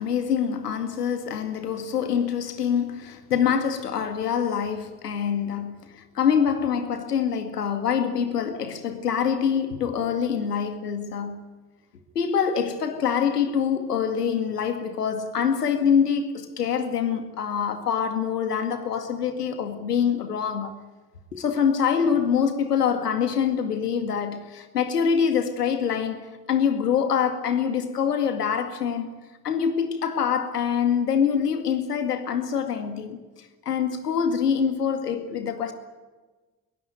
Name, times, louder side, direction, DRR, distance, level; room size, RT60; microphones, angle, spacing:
voice 1, 0.0-11.4 12.2-20.7 21.3-29.1 29.4-33.2 33.7-35.7, left 7 dB, 90° left, 2.2 m, -25 dB
23.0 x 20.5 x 9.3 m
hypercardioid pair, 50°, 45 cm